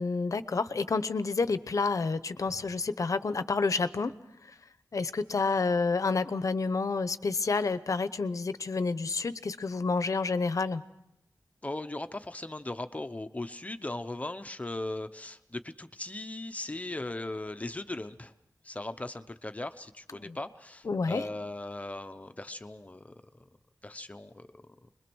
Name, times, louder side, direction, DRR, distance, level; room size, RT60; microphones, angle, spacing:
voice 1, 0.0-4.1 4.9-10.8 20.2-20.4 20.8-21.2, left 4 dB, 60° left, 13 dB, 0.9 m, -29 dB
voice 2, 11.6-18.3 18.6-23.1 23.8-24.6, left 2 dB, 20° left, 9 dB, 0.9 m, -38 dB
26.0 x 21.5 x 6.3 m, 0.87 s
wide cardioid pair, 115°, 6 cm